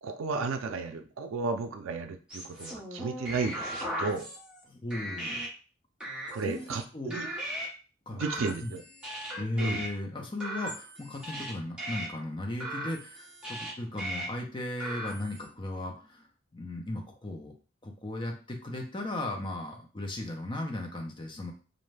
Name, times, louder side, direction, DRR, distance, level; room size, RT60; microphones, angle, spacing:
voice 1, 0.0-4.3 6.3-7.3 8.1-8.8 9.6-9.8, right 4 dB, 90° right, 6 dB, 0.4 m, -33 dB
sound 1, 2.3-4.6 4.9-5.5 6.0-6.8 7.1-7.7 8.2-9.9 10.4-11.5 11.8-12.1 12.6-13.7 14.0-14.3 14.8-15.4, right 1 dB, 5° right, 0.8 m, -38 dB
voice 2, 4.7-5.4 6.5-6.6 6.9-7.2 8.1-8.2 8.6-8.7 9.3-16.2 16.5-17.5 17.8-21.5, left 1 dB, 25° left, 2 dB, 0.5 m, -36 dB
2.5 x 2.2 x 3.1 m, 0.36 s
head